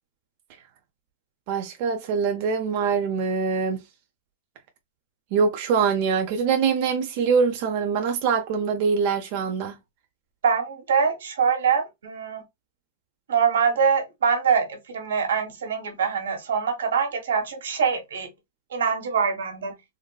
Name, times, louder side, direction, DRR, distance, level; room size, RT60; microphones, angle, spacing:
voice 1, 1.5-3.8 5.3-9.8, right 5 dB, 40° right, 0.6 m, -23 dB
voice 2, 10.4-12.4 13.3-18.3 18.7-19.7, right 6 dB, 90° right, 1.3 m, -24 dB
3.8 x 2.1 x 2.2 m
supercardioid pair, 160°, 0 cm